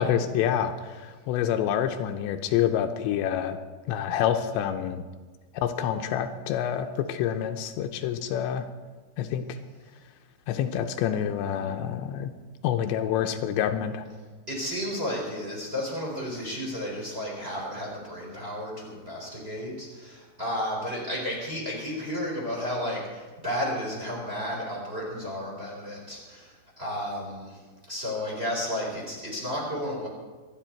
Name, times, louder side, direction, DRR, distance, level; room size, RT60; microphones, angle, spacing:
voice 1, 0.0-3.6 3.9-5.0 5.5-8.7 9.2-9.6 10.5-12.3 12.6-14.0, left 9 dB, 85° left, 7 dB, 2.9 m, -27 dB
voice 2, 14.5-30.1, equal, 15° right, -2 dB, 3.7 m, -33 dB
24.5 x 9.9 x 4.4 m, 1.3 s
omnidirectional pair, 5.1 m